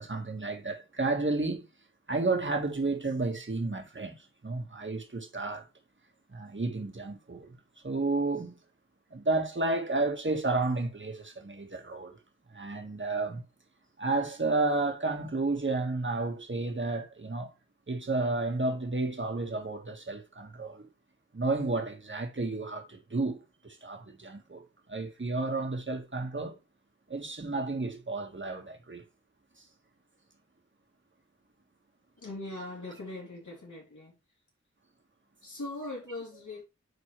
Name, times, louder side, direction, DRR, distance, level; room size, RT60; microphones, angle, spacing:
voice 1, 0.0-1.7 2.1-4.2 4.4-5.7 6.3-7.5 7.8-8.6 9.1-12.1 12.5-13.4 14.0-17.5 17.9-20.9 21.3-24.6 24.9-26.6 27.1-29.0, right 3 dB, 40° right, 1.8 m, -31 dB
voice 2, 32.2-34.2 35.4-36.6, left 2 dB, 90° left, 3.1 m, -40 dB
9.4 x 4.2 x 3.3 m
wide cardioid pair, 50°, 29 cm